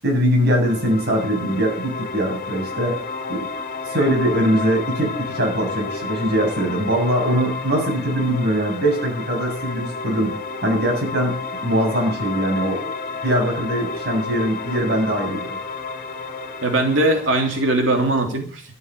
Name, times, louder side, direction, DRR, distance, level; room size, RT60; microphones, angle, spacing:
voice 1, 0.0-3.0 3.3-3.5 3.9-11.4 11.6-12.9 13.2-15.6, equal, 55° right, 1 dB, 7.3 m, -22 dB
sound 1, 0.6-17.6, left 4 dB, 45° left, 2.0 m, -31 dB
voice 2, 16.6-18.6, right 2 dB, 80° right, 3 dB, 3.2 m, -20 dB
13.5 x 9.0 x 8.2 m, 0.43 s
head